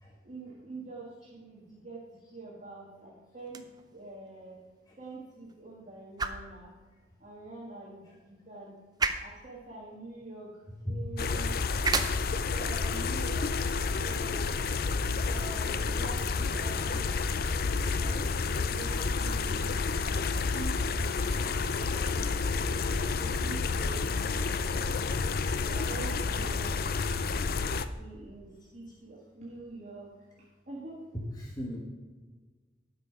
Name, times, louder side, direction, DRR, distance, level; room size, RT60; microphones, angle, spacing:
voice 1, 0.2-2.0 2.3-3.6 3.9-4.6 5.0-6.7 7.2-8.8 9.2-10.5 10.8-11.5 12.5-13.5 14.0-14.5 15.2-19.8 20.5-22.3 22.9-25.0 25.6-27.5 28.0-30.1 30.7-31.0, right 2 dB, 40° right, -6 dB, 1.7 m, -45 dB
sound 1, 3.4-15.4, right 4 dB, 20° right, 0.5 m, -39 dB
sound 2, 11.2-27.9, left 4 dB, 55° left, 0.4 m, -30 dB
voice 2, 31.1-31.8, equal, 20° left, -3 dB, 1.3 m, -37 dB
12.0 x 5.6 x 4.8 m, 1.4 s
head